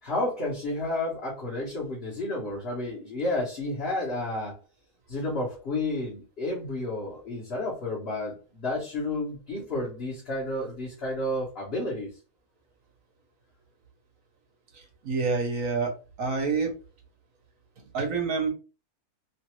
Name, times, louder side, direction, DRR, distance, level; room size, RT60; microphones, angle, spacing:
voice 1, 0.0-4.6 5.1-12.1, left 2 dB, 45° left, -5 dB, 1.1 m, -31 dB
voice 2, 15.0-15.9 16.2-16.7 17.9-18.5, right 4 dB, 60° right, 3 dB, 1.3 m, -27 dB
3.2 x 2.5 x 3.0 m, 0.33 s
omnidirectional pair, 1.7 m